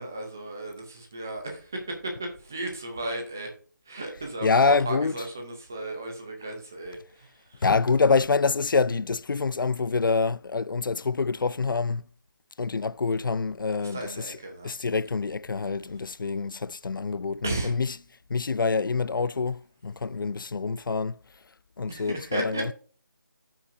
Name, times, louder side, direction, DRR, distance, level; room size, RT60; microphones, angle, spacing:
voice 1, 0.0-3.5 3.9-7.6 13.8-14.7 17.4-17.7 21.9-22.7, right 2 dB, 10° right, 0.5 m, -34 dB
voice 2, 4.4-5.1 7.6-12.0 12.6-14.4 14.6-17.9 18.3-21.2 21.8-22.7, left 4 dB, 80° left, 0.4 m, -26 dB
14.0 x 5.8 x 2.6 m
figure-of-eight pair, 175°, 11 cm